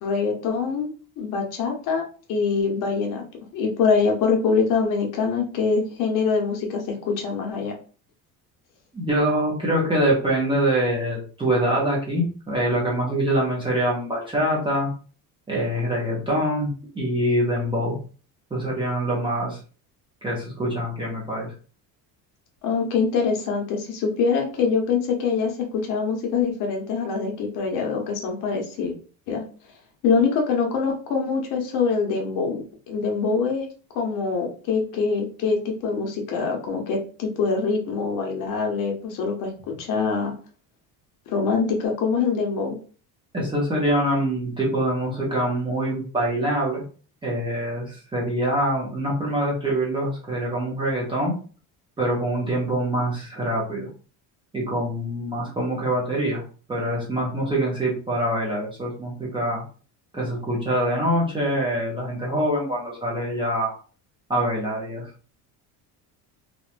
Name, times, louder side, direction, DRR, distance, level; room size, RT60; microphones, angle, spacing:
voice 1, 0.0-2.0 2.3-3.2 3.5-7.7 22.6-28.9 29.3-29.4 30.0-32.6 32.9-33.7 33.9-40.3 41.3-42.8, left 5 dB, 60° left, 1 dB, 0.8 m, -24 dB
voice 2, 8.9-14.9 15.5-18.0 18.5-19.6 20.2-21.5 43.3-46.8 47.2-51.3 52.0-53.9 54.5-56.4 56.7-59.6 60.1-63.7 64.3-65.1, right 1 dB, 15° right, -4 dB, 0.5 m, -24 dB
2.9 x 2.1 x 2.4 m, 0.39 s
cardioid pair, 180°, 37 cm